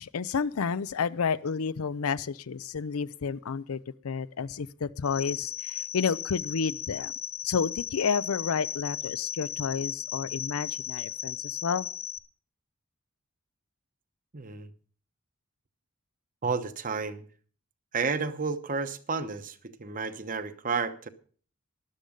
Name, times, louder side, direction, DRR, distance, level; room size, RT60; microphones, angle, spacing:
voice 1, 0.0-7.1 7.4-11.9, left 6 dB, 85° left, 0.5 m, -30 dB
sound 1, 5.0-12.2, left 10 dB, 50° left, 1.1 m, -36 dB
voice 2, 14.3-14.7 16.4-17.2 17.9-21.1, right 4 dB, 40° right, 1.0 m, -31 dB
13.0 x 11.5 x 5.1 m
head